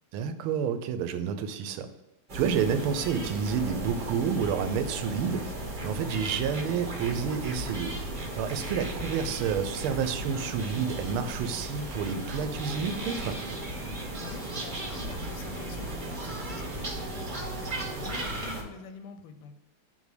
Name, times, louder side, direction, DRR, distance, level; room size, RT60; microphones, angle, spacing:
voice 1, 0.1-1.9 2.3-5.5 5.8-13.4, right 7 dB, 85° right, 10 dB, 1.5 m, -29 dB
sound 1, 2.3-18.6, right 1 dB, 35° right, 0.9 m, -36 dB
voice 2, 14.2-19.5, left 5 dB, 90° left, 9 dB, 1.6 m, -46 dB
7.4 x 3.3 x 5.1 m, 1.1 s
omnidirectional pair, 2.3 m